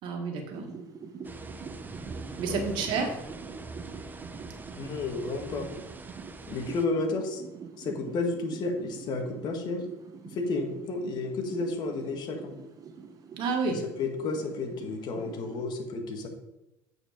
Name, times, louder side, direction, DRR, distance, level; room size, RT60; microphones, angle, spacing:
voice 1, 0.0-0.7 2.4-3.1 13.4-13.8, right 4 dB, 60° right, 2 dB, 1.9 m, -29 dB
sound 1, 0.5-15.6, right 5 dB, 40° right, 1.2 m, -45 dB
sound 2, 1.2-6.9, right 3 dB, 20° right, 0.8 m, -43 dB
voice 2, 4.8-5.7 6.5-7.4 7.8-9.8 10.2-12.6 13.7-16.3, left 3 dB, 50° left, 4 dB, 1.8 m, -32 dB
8.7 x 4.8 x 5.2 m, 0.93 s
hypercardioid pair, 85°, 9 cm